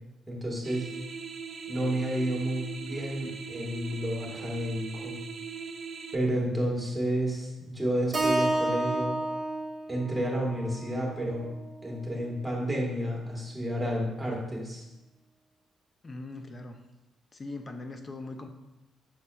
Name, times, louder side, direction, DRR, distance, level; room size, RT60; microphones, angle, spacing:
voice 1, 0.3-0.8 1.7-5.2 6.1-9.2 9.9-11.5 11.8-14.8, right 1 dB, 10° right, -2 dB, 1.3 m, -31 dB
sound 1, 0.6-6.1, right 5 dB, 55° right, 0.4 m, -40 dB
Keyboard (musical), 8.1-12.4, right 1 dB, 25° right, 0.8 m, -31 dB
voice 2, 16.0-16.8 17.3-18.5, left 2 dB, 30° left, 6 dB, 0.4 m, -40 dB
5.7 x 4.0 x 2.3 m, 0.99 s
cardioid pair, 90°, 0 cm